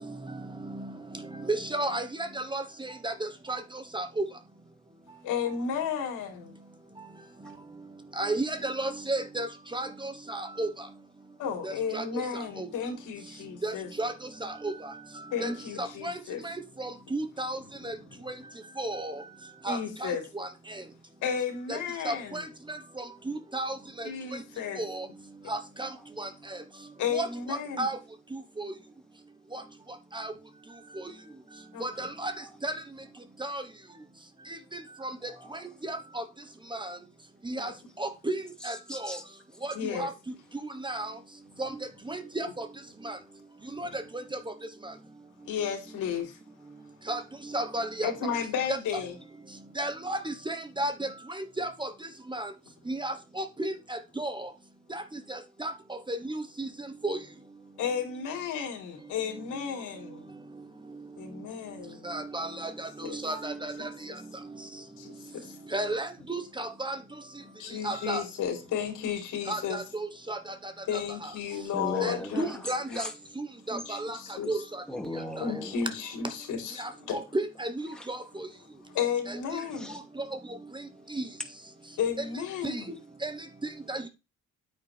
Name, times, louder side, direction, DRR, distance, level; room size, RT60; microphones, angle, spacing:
voice 1, 1.5-2.0 2.5-2.6 3.0-3.1 3.5-3.6 3.9-4.2 8.2-9.5 9.7-10.7 11.6-12.0 12.6-12.7 13.6-14.1 14.4-14.7 15.4-15.5 15.8-16.1 16.4-16.5 16.8-17.6 17.8-17.9 18.8-19.1 19.7-20.1 20.4-20.5 22.0-22.4 23.5-23.7 24.8-25.0 25.5-25.9 26.2-26.3 27.1-27.3 27.8-27.9 30.1-30.3 31.8-32.3 32.6-32.7 33.4-33.6 35.9-36.2 37.5-37.7 38.0-38.4 38.6-38.7 39.0-39.2 39.6-39.7 40.0-40.1 40.8-41.1 41.6-41.7 42.1-42.6 43.0-43.2 43.8-43.9 47.1-47.2 47.5-48.1 49.8-51.1 51.6-51.9 52.3-52.5 52.9-54.3 54.9-55.0 55.3-55.7 56.1-56.2 56.6-56.7 57.0-57.2 62.0-62.7 63.2-63.7 65.7-67.0 67.8-68.2 69.5-70.4 72.0-73.0 73.4-74.2 74.5-74.6 76.8-76.9 77.3-77.7 78.1-78.2 83.2-83.3 83.9-84.0, right 2 dB, 15° right, 1.1 m, -32 dB
voice 2, 5.2-6.6 11.4-13.9 15.3-16.4 19.7-20.2 21.2-22.5 24.0-24.8 27.0-27.9 31.7-31.8 37.5-37.7 39.7-40.1 43.7-44.0 45.4-46.4 48.0-49.2 57.8-60.3 61.2-62.1 63.0-63.2 63.8-63.9 65.0-65.6 67.6-69.8 70.9-72.5 72.9-73.0 73.7-74.6 75.4-77.2 78.9-79.9 82.0-82.9, left 7 dB, 90° left, 3.6 m, -33 dB
voice 3, 35.2-35.7 38.6-39.2 71.5-73.1 74.3-74.4 74.9-75.9 77.1-77.2 77.9-78.1 79.7-80.0 82.5-82.9, left 1 dB, 5° left, 2.4 m, -40 dB
9.8 x 8.8 x 3.4 m
cardioid pair, 90°, 30 cm